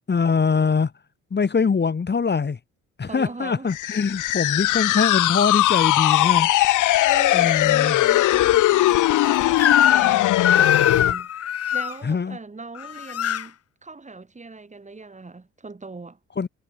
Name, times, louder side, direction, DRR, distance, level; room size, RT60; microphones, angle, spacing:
voice 1, 0.1-0.9 1.3-2.6 3.0-6.5 7.3-8.0 12.0-12.4 16.4-16.5, left 5 dB, 35° left, 3.6 m, -23 dB
voice 2, 3.0-3.7 7.0-16.2, right 3 dB, 25° right, 7.3 m, -40 dB
sound 1, 3.7-11.1, left 15 dB, 85° left, 1.5 m, -19 dB
Crying sobbing / Screech, 9.6-10.2 10.4-11.9 12.8-13.4, left 10 dB, 55° left, 1.3 m, -21 dB
cardioid pair, 90°, 30 cm